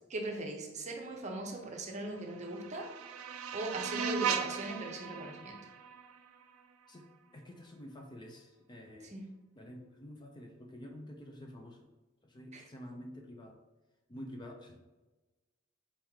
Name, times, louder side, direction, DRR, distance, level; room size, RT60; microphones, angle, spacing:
voice 1, 0.1-2.9 3.5-5.6 9.1-9.2 12.5-12.6, right 2 dB, 35° right, 2 dB, 0.7 m, -39 dB
sound 1, 2.0-7.0, right 6 dB, 85° right, 0.4 m, -38 dB
voice 2, 6.9-9.2 9.5-11.9 12.2-13.6 14.1-14.8, left 1 dB, 20° left, 2 dB, 0.4 m, -49 dB
4.3 x 3.5 x 3.1 m, 1.2 s
head